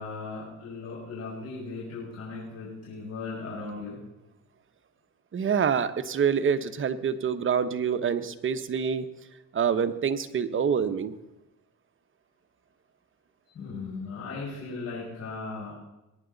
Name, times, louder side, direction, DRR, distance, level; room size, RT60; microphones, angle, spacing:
voice 1, 0.0-4.0 13.5-15.7, left 4 dB, 55° left, -8 dB, 5.8 m, -37 dB
voice 2, 5.3-9.1 9.5-11.1, right 7 dB, 40° right, 10 dB, 0.9 m, -26 dB
21.0 x 9.8 x 4.0 m, 0.96 s
cardioid pair, 90°, 30 cm